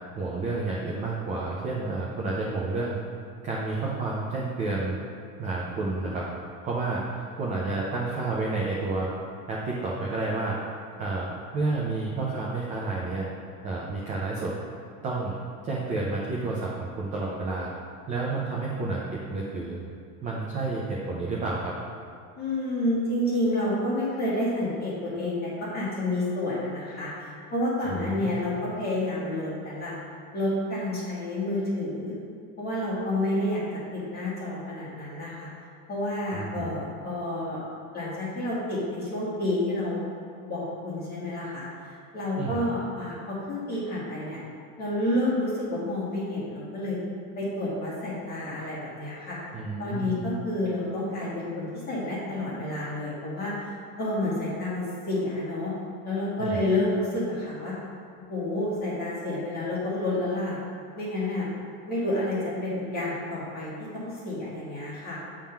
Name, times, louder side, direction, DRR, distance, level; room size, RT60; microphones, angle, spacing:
voice 1, 0.2-3.0 3.4-5.0 5.4-6.3 6.6-9.1 9.5-10.6 11.0-13.3 13.6-14.6 15.0-15.4 15.6-17.7 18.1-19.0 19.3-19.8 20.2-21.7 27.9-28.4 36.3-36.7 42.4-42.6 49.5-50.2 56.4-56.6, right 3 dB, 15° right, -4 dB, 0.5 m, -30 dB
voice 2, 22.3-30.0 30.3-32.1 32.6-33.6 33.9-35.5 35.9-37.6 37.9-40.0 40.4-44.4 44.8-47.0 47.3-49.4 49.8-53.7 54.0-55.7 56.0-57.7 58.3-60.6 60.9-61.5 61.9-65.2, left 1 dB, 20° left, -8 dB, 1.8 m, -29 dB
8.6 x 3.7 x 5.8 m, 2.4 s
supercardioid pair, 170°, 45 cm